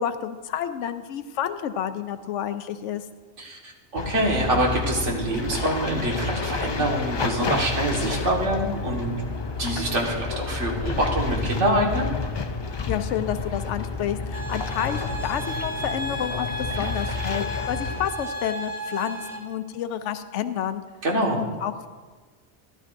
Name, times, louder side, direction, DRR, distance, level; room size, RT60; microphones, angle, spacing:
voice 1, 0.0-3.0 12.9-20.8 21.4-21.9, left 9 dB, 85° left, 11 dB, 0.9 m, -30 dB
voice 2, 3.4-9.1 9.6-12.1 21.0-21.4, right 1 dB, 85° right, -1 dB, 2.0 m, -25 dB
sound 1, 4.0-18.1, left 4 dB, 45° left, 0.3 m, -30 dB
sound 2, 14.3-19.4, equal, 25° right, 1.1 m, -33 dB
14.0 x 11.5 x 2.6 m, 1.4 s
omnidirectional pair, 1.2 m